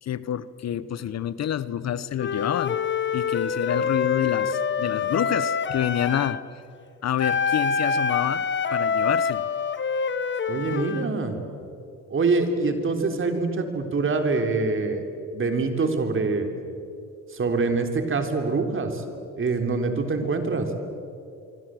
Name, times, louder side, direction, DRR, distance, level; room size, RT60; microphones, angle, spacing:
voice 1, 0.0-2.8 3.1-6.4 7.0-8.5 8.7-9.5 10.7-10.8 20.2-20.3, left 10 dB, 60° left, 16 dB, 1.0 m, -28 dB
Wind instrument woodwind instrument, 2.2-6.4 7.2-11.1, left 6 dB, 40° left, 1.2 m, -26 dB
voice 2, 10.5-11.4 12.1-15.0 15.3-16.5 17.3-19.0 19.4-20.7, right 3 dB, 45° right, 5 dB, 3.6 m, -25 dB
25.0 x 25.0 x 7.8 m, 2.6 s
cardioid pair, 90°, 30 cm